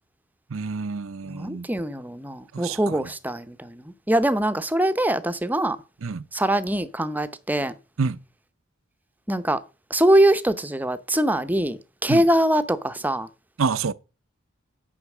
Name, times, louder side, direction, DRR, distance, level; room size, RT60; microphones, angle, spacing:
voice 1, 0.5-1.7 2.5-3.1 6.0-6.2 8.0-8.2 12.1-12.2 13.6-13.9, right 5 dB, 80° right, 0.7 m, -28 dB
voice 2, 1.3-5.8 6.3-7.7 9.3-9.6 9.9-13.3, right 1 dB, 10° right, 0.7 m, -23 dB
9.8 x 5.7 x 7.2 m
head